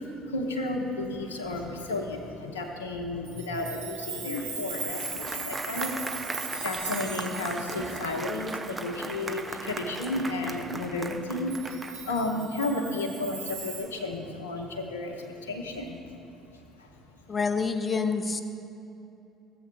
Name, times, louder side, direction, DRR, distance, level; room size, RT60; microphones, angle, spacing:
voice 1, 0.0-16.0 16.8-16.9, left 2 dB, 80° left, 2 dB, 0.7 m, -33 dB
Chime, 3.2-9.3 9.8-9.9 11.5-13.8, right 5 dB, 75° right, 0.9 m, -38 dB
Applause, 4.3-12.3, right 3 dB, 25° right, 0.6 m, -38 dB
voice 2, 17.3-18.4, left 4 dB, 30° left, 9 dB, 0.6 m, -27 dB
14.5 x 7.6 x 2.2 m, 2.8 s
figure-of-eight pair, 55°, 0 cm